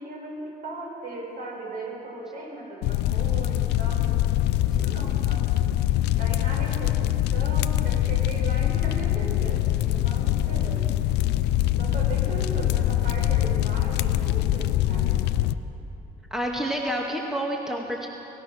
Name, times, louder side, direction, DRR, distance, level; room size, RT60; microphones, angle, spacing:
voice 1, 0.0-4.3 4.7-5.5 6.2-10.9 11.8-15.2, right 2 dB, 55° right, -1 dB, 7.2 m, -37 dB
sound 1, 2.8-15.5, left 13 dB, 85° left, 0.6 m, -24 dB
voice 2, 16.3-18.1, equal, 5° right, -1 dB, 2.0 m, -28 dB
28.0 x 17.0 x 6.4 m, 2.9 s
cardioid pair, 110°, 17 cm